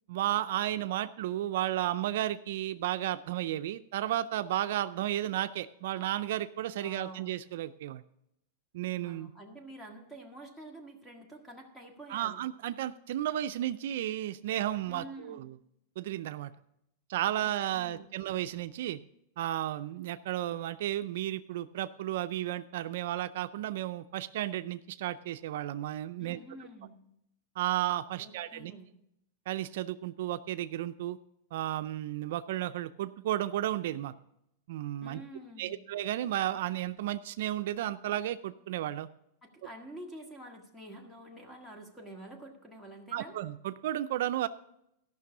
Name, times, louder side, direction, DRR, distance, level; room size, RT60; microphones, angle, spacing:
voice 1, 0.1-8.0 8.7-9.3 12.1-15.6 16.0-16.5 17.1-19.0 19.4-26.4 27.6-28.7 29.5-31.2 31.5-34.1 34.7-35.2 35.6-39.1 43.1-44.5, right 13 dB, 65° right, 11 dB, 0.4 m, -33 dB
voice 2, 6.8-7.3 9.0-12.4 14.9-15.4 17.4-18.1 26.2-27.0 28.2-28.9 35.0-35.8 39.4-43.4, right 1 dB, 5° left, 2 dB, 1.8 m, -48 dB
14.0 x 6.0 x 6.0 m, 0.80 s
supercardioid pair, 155°, 0 cm